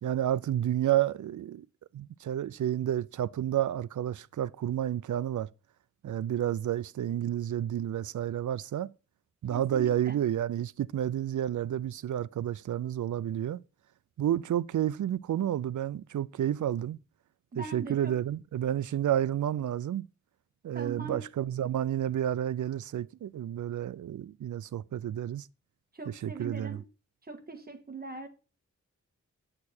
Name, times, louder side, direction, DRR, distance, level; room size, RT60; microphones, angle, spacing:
voice 1, 0.0-1.7 1.9-5.5 6.0-8.9 9.4-13.6 14.2-17.0 17.6-20.0 20.6-25.5 26.1-26.8, right 11 dB, 85° right, 0.5 m, -30 dB
voice 2, 9.5-10.2 17.5-18.2 20.7-21.2 25.9-26.8 27.3-28.3, right 3 dB, 30° right, 1.8 m, -41 dB
9.6 x 6.7 x 4.3 m
wide cardioid pair, 125°, 29 cm